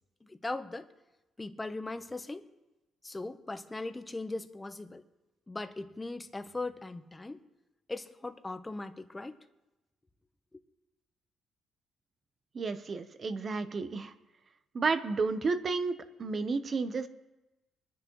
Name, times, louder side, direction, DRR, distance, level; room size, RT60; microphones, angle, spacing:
voice 1, 0.2-0.9 1.4-2.5 3.0-5.0 5.5-7.4 7.9-9.4, left 2 dB, 15° left, 9 dB, 0.9 m, -39 dB
voice 2, 12.5-14.1 14.7-17.1, right 4 dB, 45° right, 10 dB, 0.9 m, -32 dB
24.5 x 10.0 x 3.2 m, 1.0 s
cardioid pair, 90°, 0 cm